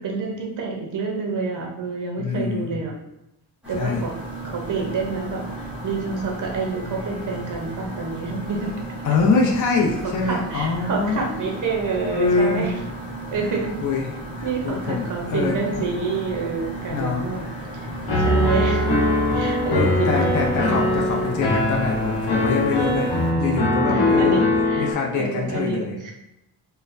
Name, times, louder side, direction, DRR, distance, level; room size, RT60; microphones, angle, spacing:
voice 1, 0.0-2.9 3.7-4.1 4.4-8.7 10.0-12.7 13.3-13.7 14.4-17.5 18.3-18.8 19.3-20.7 23.8-26.1, right 4 dB, 50° right, 0 dB, 0.7 m, -28 dB
voice 2, 2.2-2.7 3.7-4.0 9.0-11.5 12.0-12.7 13.4-13.5 13.8-14.1 14.3-15.6 16.9-17.5 17.9-18.1 19.4-24.4 24.7-26.0, left 4 dB, 45° left, -1 dB, 0.6 m, -24 dB
sound 1, 3.6-23.3, right 1 dB, 5° right, 1.0 m, -34 dB
Piano, 18.1-24.9, left 1 dB, 65° left, 0.9 m, -21 dB
4.2 x 2.1 x 2.5 m, 0.90 s
wide cardioid pair, 165°, 42 cm